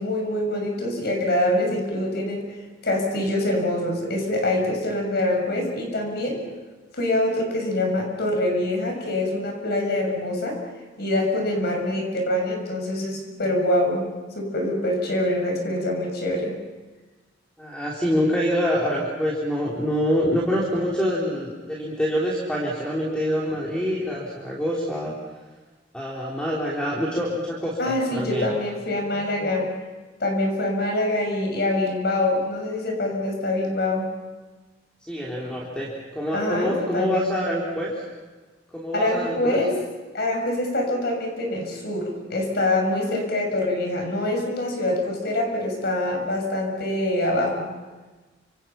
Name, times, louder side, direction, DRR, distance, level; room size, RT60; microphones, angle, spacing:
voice 1, 0.0-2.4 2.8-6.4 6.9-10.6 11.0-14.1 14.3-16.6 27.8-29.7 30.2-34.1 36.3-37.3 38.9-39.7 40.1-47.7, left 1 dB, 60° left, 2 dB, 6.5 m, -25 dB
voice 2, 17.6-25.2 25.9-28.5 35.0-38.0 38.7-39.6, equal, 5° left, -4 dB, 3.6 m, -26 dB
29.5 x 26.5 x 5.8 m, 1.3 s
head